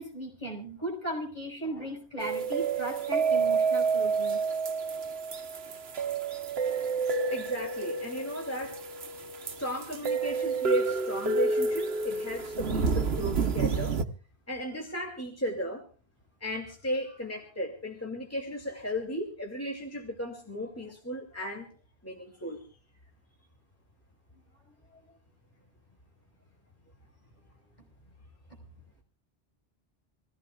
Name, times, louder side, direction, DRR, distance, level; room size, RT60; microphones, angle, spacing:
voice 1, 0.0-4.4, right 1 dB, 45° left, 0 dB, 5.7 m, -37 dB
sound 1, 2.2-14.0, right 4 dB, 75° right, 1.3 m, -29 dB
voice 2, 7.3-8.8 9.4-14.0 14.5-15.9 16.4-21.7 22.0-22.7, equal, 15° left, 1 dB, 2.6 m, -35 dB
26.5 x 16.5 x 2.4 m, 0.37 s
omnidirectional pair, 1.1 m